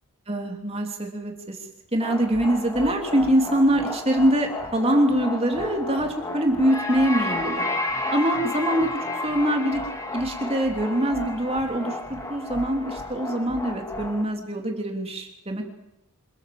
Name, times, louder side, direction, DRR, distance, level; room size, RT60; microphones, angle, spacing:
voice 1, 0.3-1.6 1.9-7.8 8.1-9.8 10.1-15.7, right 1 dB, 25° right, 3 dB, 3.0 m, -24 dB
sound 1, 2.0-14.2, left 2 dB, 15° left, 2.1 m, -32 dB
27.0 x 17.0 x 7.7 m, 0.87 s
head